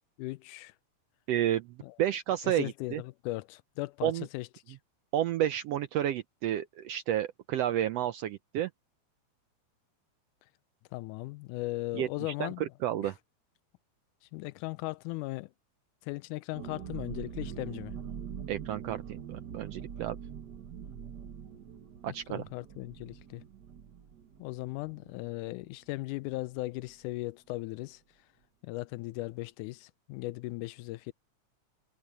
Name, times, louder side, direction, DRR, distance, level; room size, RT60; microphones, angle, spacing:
voice 1, 0.2-0.7 1.8-1.9 2.4-4.8 10.9-12.6 13.0-13.1 14.3-15.5 16.0-18.0 22.1-23.4 24.4-28.0 28.6-31.1, left 20 dB, 90° left, 2.1 m, -38 dB
voice 2, 1.3-1.7 2.0-3.0 4.0-4.3 5.1-8.7 11.9-12.1 12.4-13.2 18.5-20.2 22.0-22.5, right 11 dB, 75° right, 1.5 m, -31 dB
sound 1, 16.5-25.9 26.2-26.3 26.6-26.9, right 8 dB, 60° right, 1.0 m, -44 dB
omnidirectional pair, 3.5 m